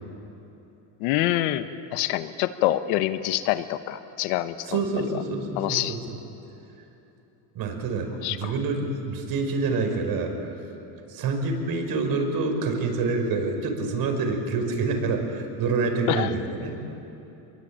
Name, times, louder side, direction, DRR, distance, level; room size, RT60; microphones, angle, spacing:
voice 1, 1.0-1.7 1.9-4.8 5.6-6.0 8.2-8.5 16.1-16.3, left 14 dB, 90° left, 11 dB, 1.3 m, -26 dB
voice 2, 4.7-6.2 7.5-10.5 11.1-16.8, right 3 dB, 55° right, 3 dB, 5.5 m, -27 dB
27.5 x 22.5 x 8.9 m, 3.0 s
cardioid pair, 130°, 43 cm